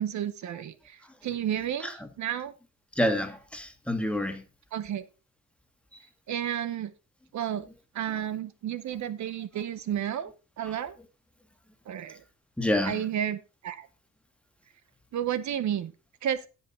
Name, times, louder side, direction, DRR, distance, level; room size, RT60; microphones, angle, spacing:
voice 1, 0.0-1.9 2.2-2.5 4.7-5.0 6.3-6.9 7.3-7.7 7.9-10.9 11.9-12.2 12.8-13.9 15.1-15.9 16.2-16.4, right 10 dB, 70° right, 0.9 m, -31 dB
voice 2, 3.0-4.4 10.7-10.8 12.6-13.0, left 1 dB, 5° left, 1.9 m, -28 dB
15.5 x 5.6 x 4.2 m
cardioid pair, 105°, 30 cm